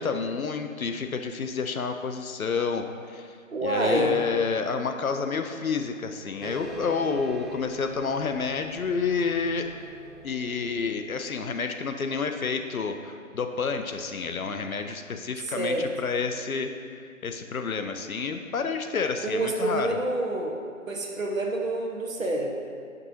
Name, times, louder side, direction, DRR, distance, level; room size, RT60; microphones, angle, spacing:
voice 1, 0.0-3.4 3.6-9.8 10.2-19.9, left 5 dB, 85° left, 7 dB, 0.6 m, -29 dB
voice 2, 3.5-4.1 15.4-15.9 19.2-20.6 20.9-22.5, right 2 dB, 70° right, 0 dB, 1.1 m, -27 dB
sound 1, 6.4-11.5, right 1 dB, ahead, 0.3 m, -42 dB
9.3 x 5.4 x 2.7 m, 2.1 s
figure-of-eight pair, 170°, 41 cm